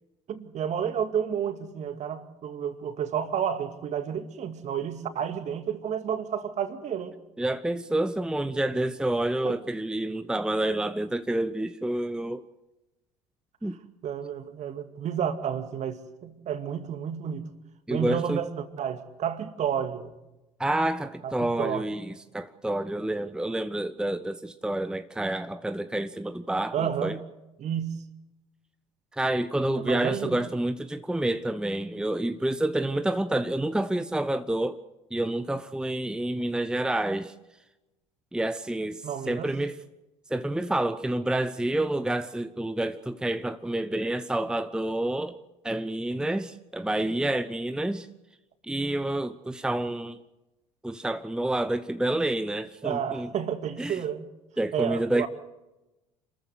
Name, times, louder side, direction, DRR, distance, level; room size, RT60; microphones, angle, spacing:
voice 1, 0.3-7.2 9.4-9.6 14.0-17.5 17.9-20.1 21.2-21.9 26.7-27.2 27.6-28.0 29.8-30.4 39.0-39.5 52.8-54.2 54.7-55.3, right 8 dB, 45° right, 2.2 m, -31 dB
voice 2, 7.4-12.4 13.6-13.8 17.9-18.4 20.6-27.2 29.1-34.8 35.1-37.3 38.3-39.8 40.3-45.4 45.6-48.1 48.6-50.2 50.8-53.3 53.8-54.0 54.6-55.3, right 1 dB, 5° right, 0.9 m, -28 dB
27.0 x 14.0 x 8.1 m
hypercardioid pair, 65°, 16 cm